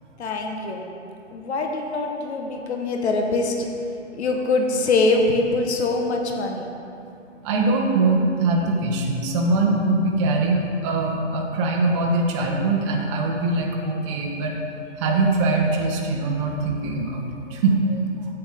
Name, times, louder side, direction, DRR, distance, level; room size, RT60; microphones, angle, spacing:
voice 1, 0.2-0.9 1.3-3.7 4.1-6.7, left 3 dB, 60° left, 2 dB, 1.2 m, -23 dB
voice 2, 7.4-14.6 15.0-18.3, right 2 dB, 25° right, -1 dB, 0.9 m, -22 dB
10.0 x 8.0 x 3.5 m, 2.6 s
hypercardioid pair, 145°, 37 cm